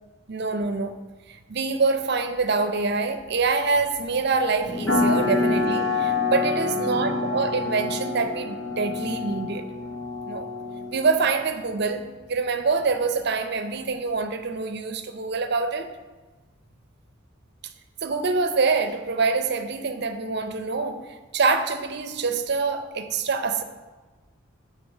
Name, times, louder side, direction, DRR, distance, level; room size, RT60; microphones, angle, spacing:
voice 1, 0.3-1.0 1.3-9.7 10.3-10.5 10.9-15.9 18.0-23.6, right 4 dB, 55° right, 0.6 m, -25 dB
sound 1, 4.6-14.2, left 1 dB, 20° left, 0.8 m, -38 dB
sound 2, 4.9-11.1, left 3 dB, 80° left, 1.6 m, -27 dB
9.4 x 3.8 x 6.6 m
head